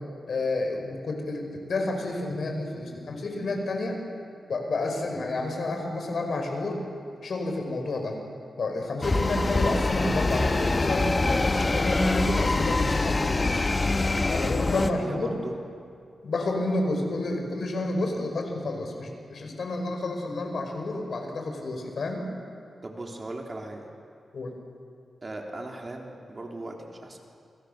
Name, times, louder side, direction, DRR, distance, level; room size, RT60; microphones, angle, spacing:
voice 1, 0.3-4.0 4.5-6.8 7.2-8.2 8.6-13.7 14.2-15.3 16.2-22.3 24.3-24.5, left 2 dB, 65° left, 3 dB, 5.1 m, -30 dB
sound 1, 9.0-14.9, left 3 dB, 30° left, 1.2 m, -24 dB
voice 2, 14.7-15.6 22.8-23.9 25.2-27.2, right 2 dB, 30° right, 1 dB, 3.4 m, -38 dB
28.0 x 25.0 x 6.7 m, 2.4 s
wide cardioid pair, 100°, 0 cm